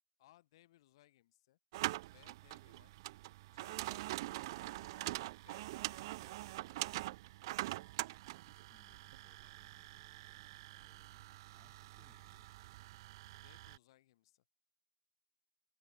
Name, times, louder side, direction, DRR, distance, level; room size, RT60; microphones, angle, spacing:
voice 1, 0.2-1.6 2.1-3.0 3.5-5.2 5.4-6.6 13.4-14.4, left 15 dB, 55° left, 2.9 m, -67 dB
sound 1, 1.7-13.8, right 18 dB, 50° right, 0.3 m, -44 dB
voice 2, 7.8-11.3 11.5-12.6, left 6 dB, 15° left, 3.5 m, -73 dB
hypercardioid pair, 135°, 3 cm